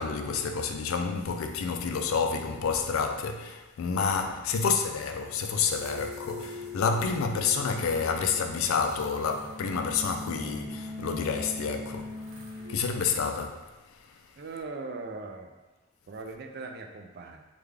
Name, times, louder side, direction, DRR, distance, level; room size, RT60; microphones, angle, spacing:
voice 1, 0.0-12.3 12.7-14.1, left 5 dB, 70° left, 0.3 m, -29 dB
sound 1, 4.1-12.7, left 2 dB, 80° right, 0.6 m, -42 dB
voice 2, 14.3-15.5 16.1-17.4, right 3 dB, 45° right, 0.3 m, -40 dB
3.5 x 2.3 x 3.3 m
head